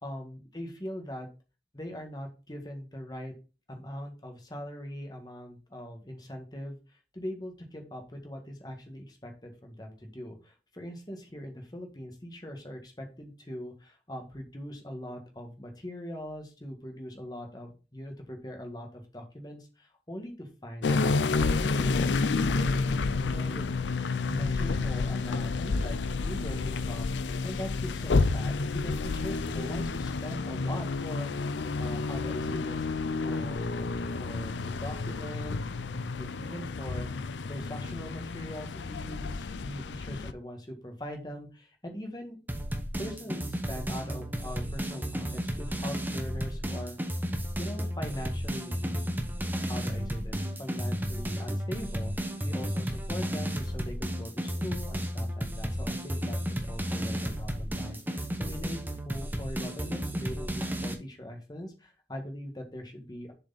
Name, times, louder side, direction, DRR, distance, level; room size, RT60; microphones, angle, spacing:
voice 1, 0.0-1.3 1.7-3.3 3.7-23.7 24.2-33.9 34.2-35.6 36.2-37.1 37.5-42.4 43.0-47.0 47.6-49.1 49.6-63.3, equal, 25° left, 3 dB, 1.8 m, -41 dB
sound 1, 20.8-40.3, left 3 dB, 90° left, 0.5 m, -30 dB
sound 2, 42.5-60.9, equal, 10° right, 1.0 m, -33 dB
7.1 x 5.1 x 4.1 m, 0.31 s
head